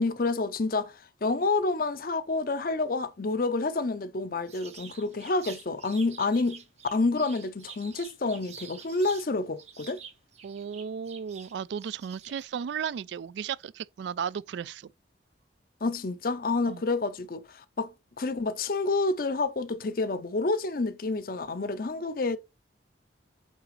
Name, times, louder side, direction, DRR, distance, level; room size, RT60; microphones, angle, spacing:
voice 1, 0.0-6.6 6.9-10.0 15.8-22.4, left 3 dB, 50° left, 0.6 m, -29 dB
sound 1, 4.5-9.3 9.6-12.5, right 6 dB, 35° right, 0.9 m, -47 dB
voice 2, 10.4-14.9 16.7-16.8, right 7 dB, 70° right, 0.3 m, -35 dB
8.5 x 3.5 x 3.2 m
head